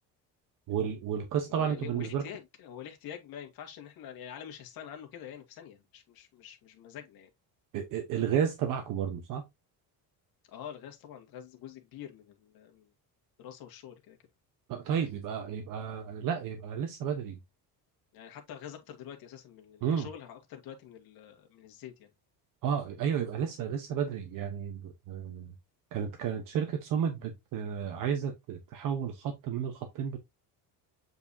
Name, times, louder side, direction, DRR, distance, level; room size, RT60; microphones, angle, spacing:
voice 1, 0.7-2.2 7.7-9.4 14.7-17.4 19.8-20.1 22.6-25.5 25.9-30.2, right 8 dB, 55° right, 1.1 m, -32 dB
voice 2, 1.5-7.3 10.5-12.9 13.4-14.2 18.1-22.1, left 9 dB, 65° left, 2.1 m, -46 dB
8.3 x 4.6 x 2.8 m
cardioid pair, 180°, 39 cm